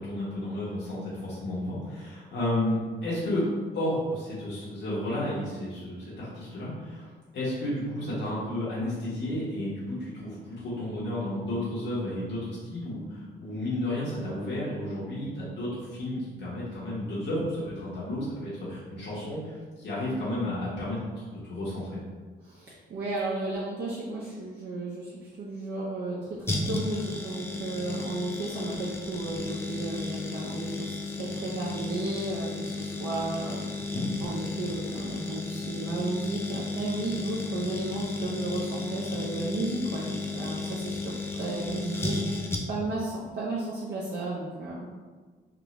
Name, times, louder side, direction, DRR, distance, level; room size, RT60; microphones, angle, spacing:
voice 1, 0.0-3.5 3.7-7.1 7.3-22.0 33.7-34.1, left 1 dB, 60° left, -9 dB, 1.2 m, -32 dB
voice 2, 22.4-33.7 34.2-44.9, right 2 dB, 55° right, -6 dB, 0.7 m, -34 dB
sound 1, 26.5-43.0 43.2-43.3, left 3 dB, 10° left, 0.5 m, -34 dB
3.6 x 2.3 x 3.0 m, 1.4 s
cardioid pair, 90°, 20 cm